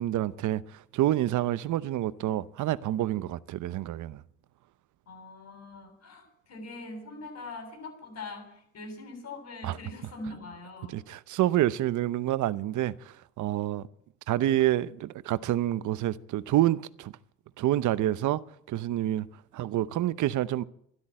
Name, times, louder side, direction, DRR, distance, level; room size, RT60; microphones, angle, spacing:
voice 1, 0.0-4.2 9.6-9.8 10.9-13.9 14.3-17.1 17.6-19.3 19.5-20.6, right 13 dB, 80° right, 0.8 m, -28 dB
voice 2, 5.1-11.0, left 2 dB, 60° left, 7.2 m, -42 dB
13.0 x 12.5 x 8.8 m
cardioid pair, 90°, 30 cm